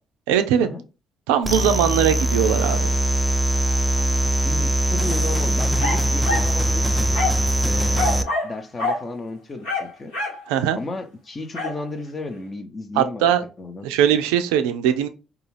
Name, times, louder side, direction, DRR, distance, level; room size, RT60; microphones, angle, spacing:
voice 1, 0.3-0.7 1.3-2.9 10.5-10.8 13.0-13.4 13.8-15.1, right 9 dB, 85° right, 0.3 m, -20 dB
sound 1, 1.4-8.2, right 1 dB, 5° right, 0.4 m, -21 dB
voice 2, 4.0-7.2 7.6-10.1 10.7-13.9, left 2 dB, 35° left, 0.7 m, -34 dB
sound 2, 5.8-6.5 7.1-7.5 7.9-8.5 8.8-9.0 9.6-10.4 11.5-11.8, left 2 dB, 90° left, 1.2 m, -25 dB
2.4 x 2.4 x 3.1 m
hypercardioid pair, 55°, 0 cm